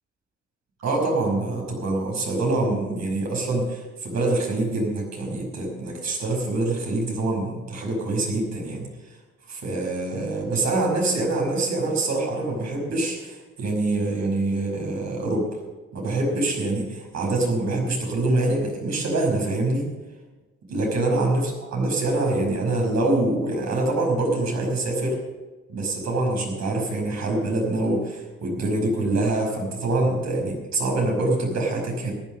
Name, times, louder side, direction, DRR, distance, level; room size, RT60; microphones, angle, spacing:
voice 1, 0.8-8.9 9.5-15.6 15.9-19.9 20.7-25.2 25.7-32.1, right 2 dB, 65° right, 0 dB, 5.5 m, -25 dB
14.5 x 9.8 x 6.5 m, 1.2 s
cardioid pair, 90°, 30 cm